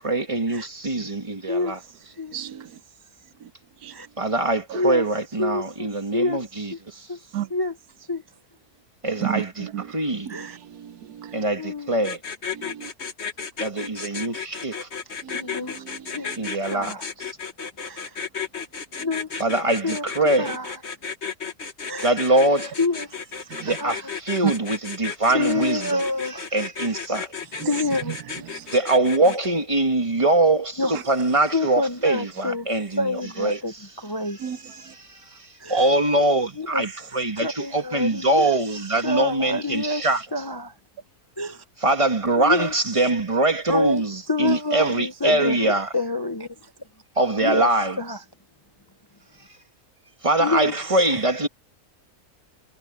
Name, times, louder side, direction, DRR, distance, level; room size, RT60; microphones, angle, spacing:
voice 1, 0.0-1.8 4.2-6.7 9.0-10.3 11.3-12.2 13.6-14.9 16.4-16.9 19.4-20.5 22.0-22.7 23.6-26.0 26.5-27.3 28.7-33.1 33.4-33.6 34.8-35.0 35.7-40.2 41.8-45.9 47.2-48.0 50.2-51.5, right 2 dB, 20° right, 1.7 m, -23 dB
voice 2, 1.5-2.4 3.9-4.1 4.7-5.1 5.4-6.8 7.1-7.2 7.5-8.2 10.3-10.6 11.6-12.0 15.3-15.8 16.1-16.4 16.6-17.1 17.8-18.2 19.0-19.4 19.8-20.0 20.4-20.8 21.9-22.1 22.8-23.2 23.8-24.1 25.3-26.4 27.5-28.5 29.3-29.4 30.8-32.7 33.0-34.8 35.6-35.9 36.5-37.1 37.4-38.6 39.0-40.0 40.3-40.7 41.4-41.6 42.4-42.7 43.7-46.7 47.4-47.7 48.0-48.2 50.4-51.2, left 2 dB, 20° left, 0.7 m, -28 dB
voice 3, 2.3-2.7 3.4-3.5 3.8-3.9 4.7-4.8 7.3-7.5 9.2-9.9 10.3-11.4 12.5-12.9 15.2-16.5 19.0-19.1 23.5-23.8 24.4-24.5 27.6-27.8 28.1-28.2 28.5-28.8 30.9-31.0 34.4-34.6 34.9-35.0, right 12 dB, 85° right, 1.3 m, -33 dB
sound 1, 12.0-29.5, left 6 dB, 45° left, 1.9 m, -33 dB
omnidirectional pair, 1.6 m